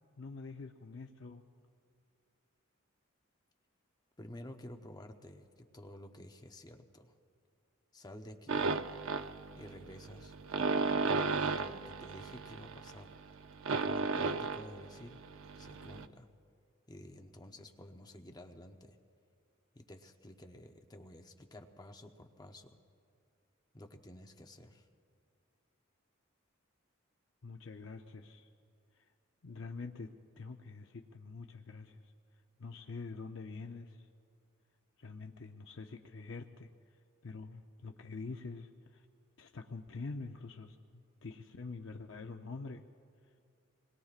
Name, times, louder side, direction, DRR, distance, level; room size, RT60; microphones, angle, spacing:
voice 1, 0.2-1.4 27.4-28.5 28.9-29.1 29.4-32.1 32.6-34.1 35.0-39.1 39.4-42.8, left 4 dB, 65° left, 4 dB, 0.6 m, -46 dB
voice 2, 4.2-7.1 7.9-8.7 9.6-10.3 11.3-13.1 13.8-15.2 15.6-16.3 16.9-19.0 19.7-22.8 23.7-24.9, left 1 dB, 20° left, 4 dB, 0.7 m, -51 dB
sound 1, 8.5-16.0, right 4 dB, 70° right, 0.6 m, -35 dB
26.5 x 21.0 x 2.5 m, 2.4 s
head